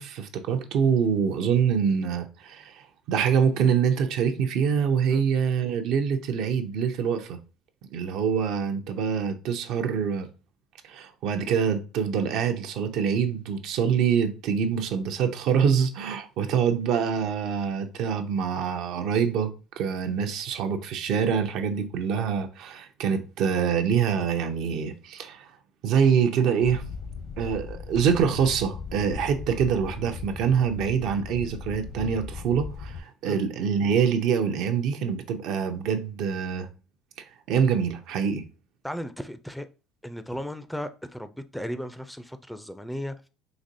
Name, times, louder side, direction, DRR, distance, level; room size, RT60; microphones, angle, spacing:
voice 1, 0.0-7.4 7.9-10.3 10.8-25.5 25.8-26.8 27.4-36.7 37.5-38.4, right 7 dB, 70° right, 0.5 m, -25 dB
sound 1, 26.6-33.0, left 5 dB, 65° left, 0.7 m, -38 dB
voice 2, 38.8-39.7 40.0-43.1, equal, 5° left, 0.3 m, -35 dB
4.1 x 2.9 x 2.6 m
supercardioid pair, 90°, 0 cm